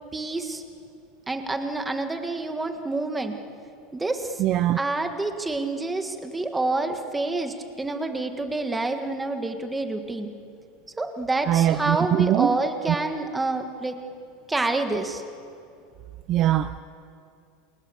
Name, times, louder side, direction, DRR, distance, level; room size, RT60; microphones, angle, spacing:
voice 1, 0.1-0.6 1.3-3.4 3.9-4.4 4.8-10.3 11.0-14.0 14.5-15.2, right 2 dB, 5° right, 6 dB, 1.6 m, -28 dB
voice 2, 4.4-4.8 11.5-12.6 12.9-13.0 16.3-16.8, right 12 dB, 30° right, 11 dB, 0.6 m, -22 dB
28.5 x 28.5 x 7.1 m, 2.5 s
supercardioid pair, 175°, 0 cm